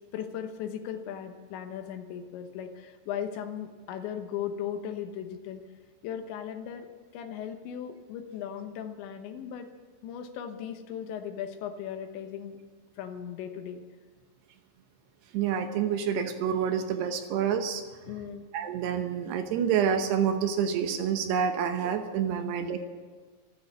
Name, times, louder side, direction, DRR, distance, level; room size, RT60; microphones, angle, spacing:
voice 1, 0.1-5.6 6.0-6.9 7.1-9.7 10.0-12.6 13.0-13.8 18.1-18.4 22.3-22.5 22.7-22.8, left 9 dB, 80° left, 7 dB, 3.4 m, -37 dB
voice 2, 15.3-17.8 18.5-22.8, right 8 dB, 75° right, 7 dB, 2.9 m, -28 dB
13.5 x 12.5 x 7.2 m, 1.5 s
omnidirectional pair, 5.2 m